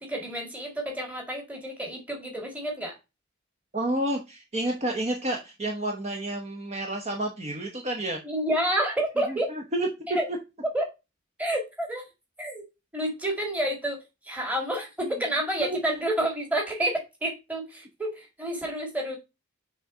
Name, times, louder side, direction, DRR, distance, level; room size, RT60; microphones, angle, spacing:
voice 1, 0.0-2.9 8.2-9.5 10.1-10.3 10.7-10.9 11.4-12.0 12.4-12.6 12.9-14.0 14.2-19.2, right 1 dB, 5° right, 0 dB, 1.9 m, -29 dB
voice 2, 3.7-8.2 9.3-9.9 15.0-15.1 15.6-15.8, right 1 dB, 30° right, 2 dB, 1.0 m, -30 dB
6.5 x 3.8 x 5.5 m, 0.25 s
head